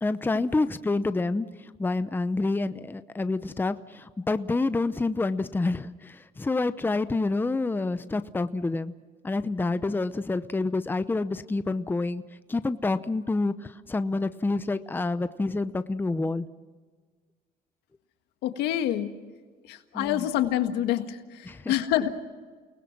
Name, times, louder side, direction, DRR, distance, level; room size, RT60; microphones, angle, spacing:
voice 1, 0.0-8.9 9.2-12.2 12.5-16.5 19.9-20.2 21.4-21.7, left 3 dB, 10° left, 12 dB, 0.7 m, -28 dB
voice 2, 18.4-19.1 19.7-22.1, left 12 dB, 90° left, 8 dB, 1.7 m, -27 dB
29.5 x 20.0 x 6.0 m, 1.4 s
cardioid pair, 110°, 17 cm